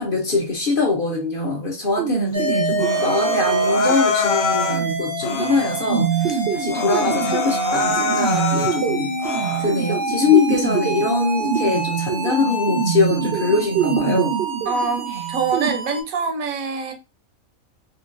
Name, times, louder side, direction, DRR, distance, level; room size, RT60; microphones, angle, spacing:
voice 1, 0.0-14.3, left 4 dB, 45° left, 0.8 m, -23 dB
sound 1, 2.0-15.7, right 7 dB, 60° right, 0.7 m, -26 dB
sound 2, 2.3-16.0, right 2 dB, 20° right, 0.7 m, -27 dB
Human voice, 2.8-4.8 5.2-5.9 6.3-6.4 6.7-8.8 9.2-9.8, left 6 dB, 90° left, 1.1 m, -26 dB
voice 2, 14.7-16.9, right 5 dB, 75° right, 1.1 m, -24 dB
3.8 x 2.4 x 2.5 m
omnidirectional pair, 1.5 m